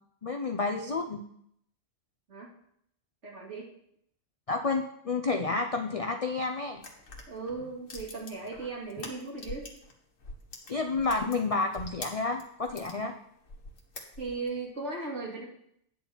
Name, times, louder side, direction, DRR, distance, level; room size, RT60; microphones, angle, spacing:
voice 1, 0.2-1.2 4.5-6.8 10.7-13.1, left 3 dB, 45° left, 5 dB, 0.5 m, -30 dB
voice 2, 3.2-3.7 7.3-9.7 14.2-15.4, right 3 dB, 60° right, -3 dB, 2.7 m, -37 dB
sound 1, 6.8-9.9 10.2-13.0 13.4-14.5, left 2 dB, 75° left, 1.8 m, -44 dB
9.5 x 4.4 x 7.1 m, 0.71 s
omnidirectional pair, 1.4 m